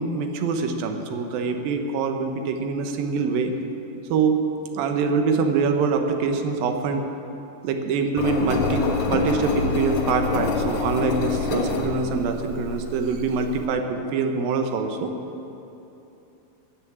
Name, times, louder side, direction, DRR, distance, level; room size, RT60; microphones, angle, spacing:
voice 1, 0.0-3.5 4.0-4.4 4.7-7.1 7.6-15.1, right 4 dB, 85° right, 5 dB, 2.9 m, -24 dB
Engine, 8.2-13.6, left 4 dB, 75° left, 3.0 m, -27 dB
13.5 x 10.5 x 8.6 m, 2.9 s
omnidirectional pair, 4.0 m